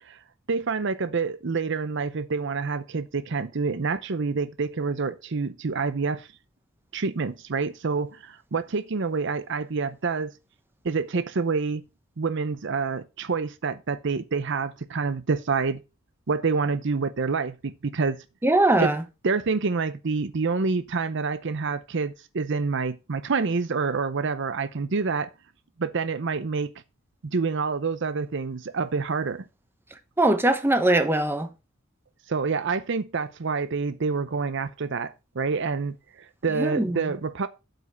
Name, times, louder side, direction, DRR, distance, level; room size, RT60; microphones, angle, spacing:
voice 1, 0.5-6.3 6.9-10.3 10.8-11.8 12.2-15.8 16.3-18.2 18.8-18.9 19.2-25.3 25.8-26.7 27.2-29.4 32.3-36.0 36.4-37.5, right 4 dB, 65° right, 0.6 m, -27 dB
voice 2, 18.4-19.0 30.2-31.5 36.5-37.0, right 2 dB, 10° right, 1.0 m, -21 dB
8.1 x 5.3 x 5.5 m
head